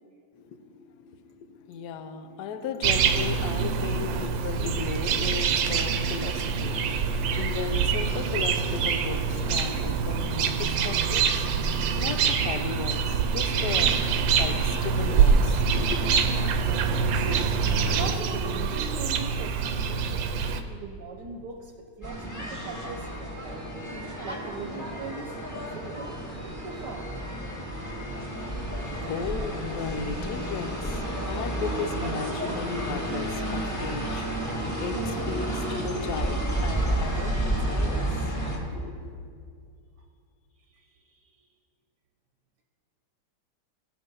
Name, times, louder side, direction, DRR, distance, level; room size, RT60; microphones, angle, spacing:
voice 1, 0.3-16.4 28.3-39.3, left 5 dB, 65° left, 8 dB, 1.2 m, -36 dB
sound 1, 2.8-20.6, right 6 dB, 85° right, 1.4 m, -25 dB
voice 2, 17.1-17.5 17.8-20.4 20.7-23.6 24.2-25.4 25.7-27.2 36.1-36.2 40.7-41.3, right 4 dB, 70° right, 2 dB, 1.3 m, -40 dB
sound 2, 22.0-38.6, right 1 dB, 10° left, 1.7 m, -31 dB
15.5 x 6.1 x 5.4 m, 2.2 s
omnidirectional pair, 2.0 m